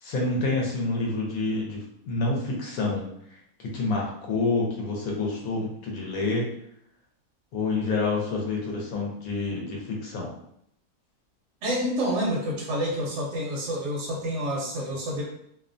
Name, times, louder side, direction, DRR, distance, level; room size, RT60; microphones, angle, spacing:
voice 1, 0.0-1.8 2.1-3.1 3.6-6.5 7.5-10.3, left 3 dB, 70° left, -2 dB, 1.1 m, -28 dB
voice 2, 11.6-15.2, equal, 65° right, -2 dB, 0.8 m, -28 dB
2.7 x 2.1 x 2.5 m, 0.72 s
omnidirectional pair, 1.6 m